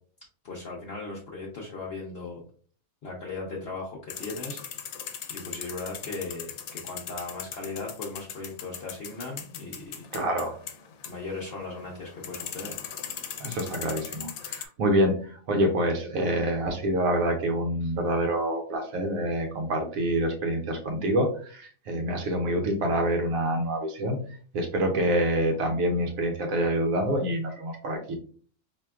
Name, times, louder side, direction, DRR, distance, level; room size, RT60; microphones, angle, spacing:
voice 1, 0.4-2.4 3.0-4.6 5.3-10.0 11.0-12.8, left 3 dB, 55° left, -3 dB, 0.8 m, -37 dB
sound 1, 4.1-14.6, left 8 dB, 85° left, 1.0 m, -39 dB
voice 2, 10.1-10.6 13.4-24.2 24.5-28.1, right 1 dB, 80° right, 2 dB, 1.1 m, -26 dB
4.4 x 2.8 x 2.3 m, 0.44 s
omnidirectional pair, 1.4 m